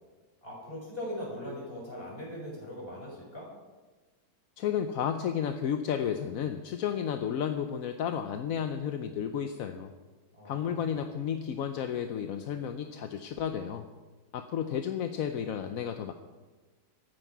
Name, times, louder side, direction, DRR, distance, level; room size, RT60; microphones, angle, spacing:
voice 1, 0.4-3.5 10.3-10.9, left 1 dB, 30° left, -3 dB, 5.9 m, -40 dB
voice 2, 4.6-9.9 10.4-13.8 14.3-16.1, left 8 dB, 60° left, 7 dB, 1.0 m, -32 dB
23.5 x 9.5 x 4.7 m, 1.3 s
omnidirectional pair, 1.9 m